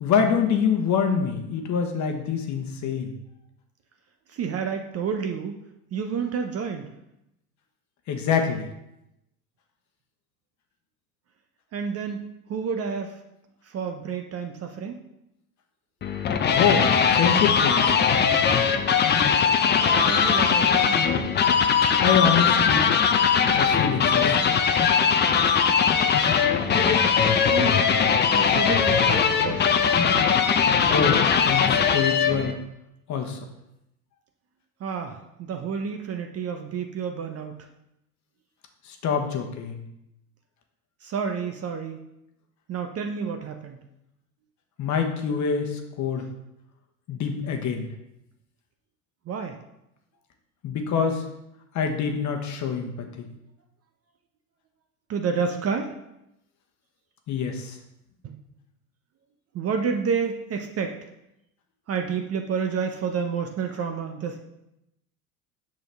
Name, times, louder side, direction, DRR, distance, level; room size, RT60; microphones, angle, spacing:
voice 1, 0.0-3.1 8.1-8.7 16.5-16.9 17.1-17.9 22.0-22.9 23.5-24.6 30.7-32.5 33.1-33.4 38.9-39.8 44.8-46.2 47.1-47.9 50.6-51.2 51.7-52.9 53.2-53.3 57.3-57.7, left 6 dB, 40° left, 4 dB, 1.1 m, -25 dB
voice 2, 4.3-5.5 5.9-6.9 11.7-12.2 12.5-13.1 13.7-15.0 19.8-21.0 26.6-27.7 28.3-29.8 34.8-37.6 41.0-42.0 42.7-43.8 49.3-49.6 55.1-55.9 58.2-58.4 59.5-61.0 61.9-64.4, right 6 dB, 35° right, 5 dB, 0.7 m, -30 dB
sound 1, 16.0-32.5, left 6 dB, 25° left, 0.6 m, -20 dB
6.6 x 6.2 x 3.4 m, 0.85 s
hypercardioid pair, 85°, 44 cm